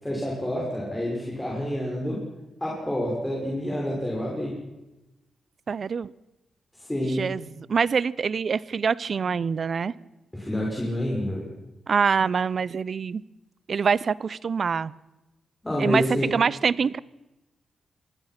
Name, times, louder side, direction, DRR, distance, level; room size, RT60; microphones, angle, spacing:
voice 1, 0.0-2.2 2.6-4.5 6.7-7.2 10.3-11.4 15.6-16.3, equal, 10° left, -3 dB, 5.9 m, -28 dB
voice 2, 5.7-6.1 7.1-9.9 11.9-13.2 13.7-14.9 15.8-16.0 16.3-17.0, right 6 dB, 50° right, 21 dB, 0.7 m, -25 dB
26.5 x 20.5 x 6.0 m, 1.0 s
cardioid pair, 115°, 0 cm